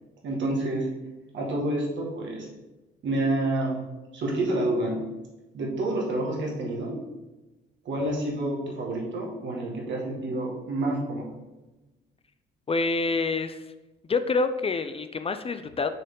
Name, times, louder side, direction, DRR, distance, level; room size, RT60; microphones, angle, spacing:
voice 1, 0.2-0.9 1.3-2.5 3.0-3.8 4.1-5.0 5.5-7.0 7.8-11.3, right 1 dB, 70° right, -2 dB, 1.9 m, -28 dB
voice 2, 12.7-13.7 14.1-15.9, left 3 dB, 30° left, 10 dB, 0.4 m, -27 dB
6.5 x 4.2 x 3.8 m, 1.1 s
cardioid pair, 90°, 20 cm